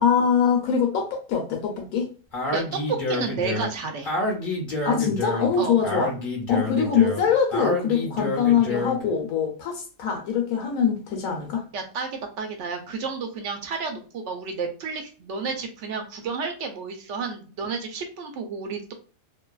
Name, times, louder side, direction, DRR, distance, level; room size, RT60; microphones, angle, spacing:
voice 1, 0.0-2.1 4.9-6.1 6.5-11.6, left 7 dB, 85° left, 1.0 m, -23 dB
Speech, 2.3-9.1, left 1 dB, 45° left, 0.7 m, -28 dB
voice 2, 2.5-4.1 5.6-5.8 11.7-18.9, right 4 dB, 70° right, 0.8 m, -31 dB
2.7 x 2.3 x 2.2 m
omnidirectional pair, 1.4 m